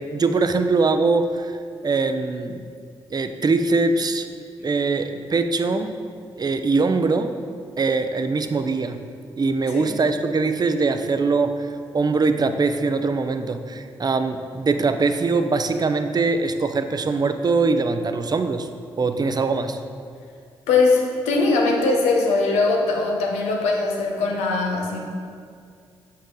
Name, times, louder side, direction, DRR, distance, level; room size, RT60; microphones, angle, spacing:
voice 1, 0.1-1.6 1.8-2.6 3.1-4.3 4.6-5.9 6.4-7.3 7.8-9.0 9.4-18.7 19.0-19.8, right 3 dB, 40° right, 8 dB, 0.5 m, -22 dB
voice 2, 20.7-25.0, left 3 dB, 90° left, 0 dB, 0.8 m, -21 dB
6.7 x 5.5 x 3.8 m, 2.2 s
supercardioid pair, 45°, 11 cm